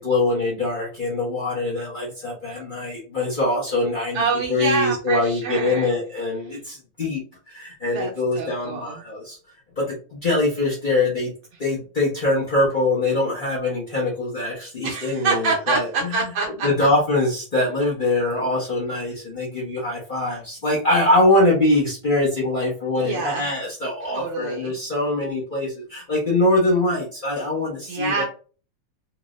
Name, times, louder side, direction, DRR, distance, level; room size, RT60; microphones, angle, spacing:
voice 1, 0.0-4.2 4.5-7.2 7.5-9.4 9.8-11.3 11.6-16.3 16.6-28.2, left 2 dB, 65° left, -5 dB, 0.5 m, -23 dB
voice 2, 4.1-5.9 7.8-9.0 14.8-16.7 22.9-23.5 24.0-24.8 27.9-28.2, right 4 dB, 90° right, -3 dB, 1.8 m, -26 dB
4.5 x 2.0 x 2.4 m, 0.38 s
omnidirectional pair, 2.4 m